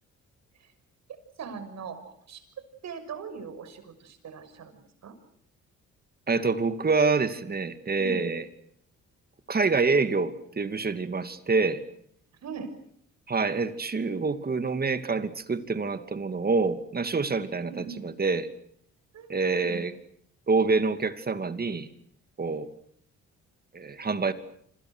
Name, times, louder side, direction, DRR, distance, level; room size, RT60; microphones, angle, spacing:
voice 1, 1.4-2.4 2.8-5.1 8.0-8.2 12.4-12.7 17.6-18.0 19.1-19.9, right 5 dB, 60° right, 9 dB, 6.4 m, -40 dB
voice 2, 6.3-8.4 9.5-11.8 13.3-18.5 19.3-19.9 20.5-21.9 22.4-22.7 23.7-24.3, right 4 dB, 30° right, 10 dB, 2.6 m, -26 dB
29.5 x 26.5 x 6.4 m, 0.66 s
cardioid pair, 90°, 30 cm